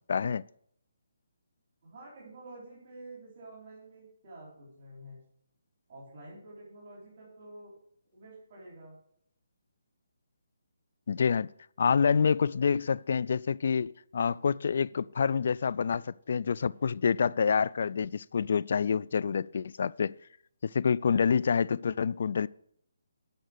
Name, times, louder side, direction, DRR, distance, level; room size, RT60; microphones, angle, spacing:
voice 1, 0.1-0.4 11.1-11.5 11.8-20.2 20.6-22.5, left 6 dB, 60° left, 0.3 m, -27 dB
voice 2, 1.8-5.2 5.9-7.7 8.1-9.0, right 2 dB, 40° right, 4.3 m, -49 dB
11.0 x 6.4 x 6.3 m
hypercardioid pair, 155°, 0 cm